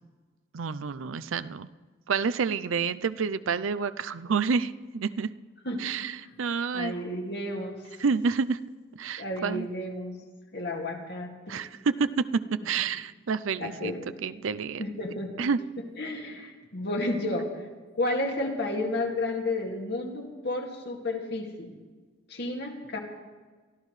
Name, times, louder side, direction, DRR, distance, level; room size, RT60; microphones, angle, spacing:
voice 1, 0.5-1.7 2.1-5.3 5.8-6.1 6.4-7.0 8.0-8.6 9.0-9.7 11.5-13.9 14.2-14.9 15.4-15.6, right 5 dB, 75° right, 13 dB, 0.5 m, -28 dB
voice 2, 6.7-7.8 9.2-10.2 10.5-11.6 13.6-14.1 14.8-15.4 16.0-17.5 17.9-21.7 22.3-23.0, left 2 dB, 55° left, 2 dB, 2.1 m, -32 dB
23.5 x 14.0 x 3.3 m, 1.4 s
head